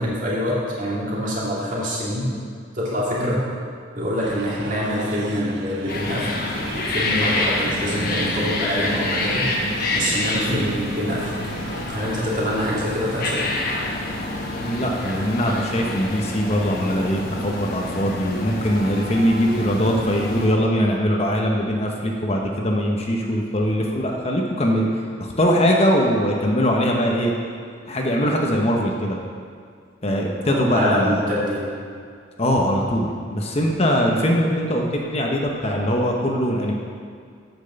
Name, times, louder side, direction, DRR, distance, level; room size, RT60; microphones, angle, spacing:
voice 1, 0.0-2.3 2.7-3.4 3.9-6.3 6.7-9.5 9.9-11.3 11.9-13.4 30.4-31.7, equal, 40° right, -6 dB, 2.3 m, -25 dB
sound 1, 4.2-11.8, right 3 dB, 65° right, 0.7 m, -34 dB
sound 2, 5.9-20.5, left 2 dB, 50° left, 1.1 m, -27 dB
voice 2, 14.6-24.9 25.2-27.3 27.9-29.2 30.0-31.3 32.4-36.7, equal, 35° left, 0 dB, 0.9 m, -21 dB
8.5 x 6.2 x 6.9 m, 2.2 s
head